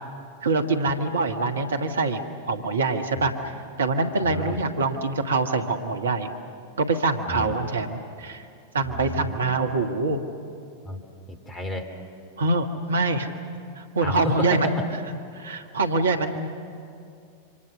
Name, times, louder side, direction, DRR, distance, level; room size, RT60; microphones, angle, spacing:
voice 1, 0.4-2.2 2.5-3.5 3.8-6.3 6.8-8.4 8.7-10.2 12.4-13.3 13.8-14.7 15.4-16.5, right 3 dB, 70° right, 6 dB, 1.5 m, -24 dB
voice 2, 3.1-3.5 4.2-4.6 7.3-7.6 8.8-9.4 10.8-11.9 14.0-14.9, left 1 dB, 20° left, 7 dB, 2.9 m, -32 dB
27.0 x 25.5 x 6.7 m, 2.5 s
figure-of-eight pair, 90°, 0 cm